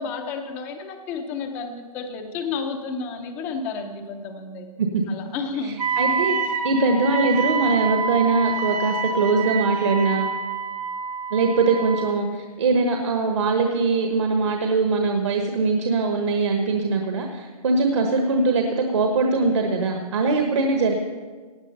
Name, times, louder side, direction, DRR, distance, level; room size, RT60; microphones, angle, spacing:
voice 1, 0.0-4.7 5.1-5.8, left 4 dB, 10° left, 6 dB, 0.6 m, -31 dB
voice 2, 5.6-10.3 11.3-20.9, right 3 dB, 50° right, 3 dB, 1.2 m, -22 dB
Wind instrument woodwind instrument, 5.8-12.2, right 5 dB, 80° right, 1.3 m, -27 dB
16.5 x 9.5 x 5.5 m, 1.5 s
hypercardioid pair, 165°, 20 cm